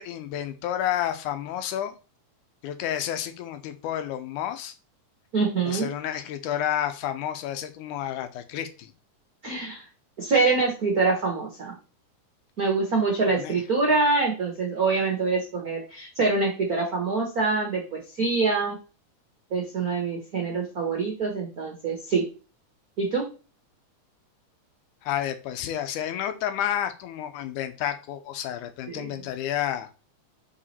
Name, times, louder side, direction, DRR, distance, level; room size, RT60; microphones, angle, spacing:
voice 1, 0.0-1.9 2.6-4.7 5.7-8.9 13.4-13.6 25.0-29.9, left 10 dB, 80° left, 9 dB, 2.1 m, -30 dB
voice 2, 5.3-5.9 9.4-9.8 10.2-11.7 12.6-18.8 19.5-22.2 23.0-23.2 28.9-29.1, right 4 dB, 80° right, 0 dB, 0.8 m, -25 dB
5.0 x 4.8 x 4.2 m, 0.34 s
omnidirectional pair, 3.7 m